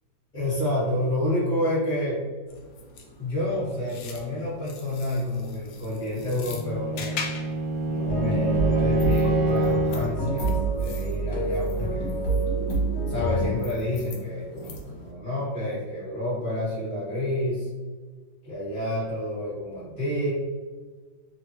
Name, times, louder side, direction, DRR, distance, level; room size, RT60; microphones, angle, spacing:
voice 1, 0.3-2.2 3.2-7.2 7.9-12.1 13.1-17.7 18.4-20.3, left 1 dB, 25° left, -8 dB, 1.2 m, -29 dB
sound 1, 2.5-15.1, left 4 dB, 80° left, 0.8 m, -43 dB
Bowed string instrument, 6.2-10.1, right 1 dB, 85° right, 1.4 m, -26 dB
sound 2, 8.1-13.5, right 2 dB, 55° left, 1.3 m, -26 dB
3.1 x 2.2 x 3.0 m, 1.4 s
omnidirectional pair, 2.1 m